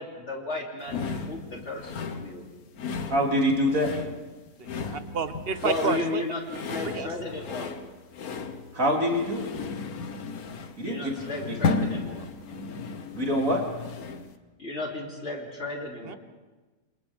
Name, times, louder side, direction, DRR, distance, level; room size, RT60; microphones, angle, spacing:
voice 1, 0.0-2.5 5.6-7.7 10.8-12.3 14.6-16.2, left 2 dB, 50° left, -2 dB, 3.4 m, -34 dB
sound 1, 0.9-14.4, left 4 dB, 85° left, 1.6 m, -34 dB
voice 2, 3.1-3.9 8.7-9.5 10.8-11.1 11.5-11.9 13.1-13.6, equal, 65° right, -1 dB, 3.5 m, -25 dB
voice 3, 4.8-6.2 6.9-7.1 16.0-16.1, right 5 dB, 45° right, 10 dB, 1.1 m, -30 dB
28.0 x 27.5 x 3.6 m, 1.3 s
omnidirectional pair, 1.5 m